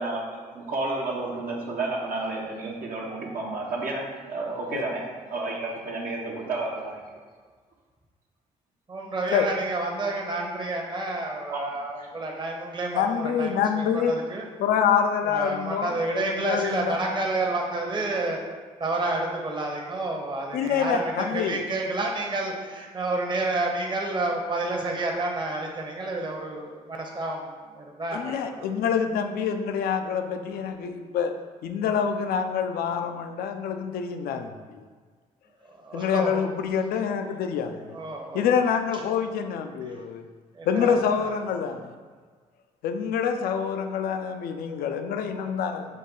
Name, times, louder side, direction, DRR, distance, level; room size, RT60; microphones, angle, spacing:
voice 1, 0.0-5.0 5.3-7.0 11.5-11.8, right 2 dB, 65° right, -2 dB, 0.8 m, -31 dB
voice 2, 8.9-13.5 13.9-14.4 15.2-18.4 18.8-28.7 32.9-33.0 35.6-36.5 37.9-38.5 40.5-41.4, right 2 dB, 30° right, 0 dB, 0.8 m, -30 dB
voice 3, 12.9-14.2 14.6-17.0 20.5-21.6 28.1-31.3 31.6-34.8 35.9-38.0 38.3-40.2 40.7-41.9 42.8-45.9, left 7 dB, 75° left, 7 dB, 0.4 m, -26 dB
5.3 x 2.1 x 3.8 m, 1.5 s
supercardioid pair, 65°, 16 cm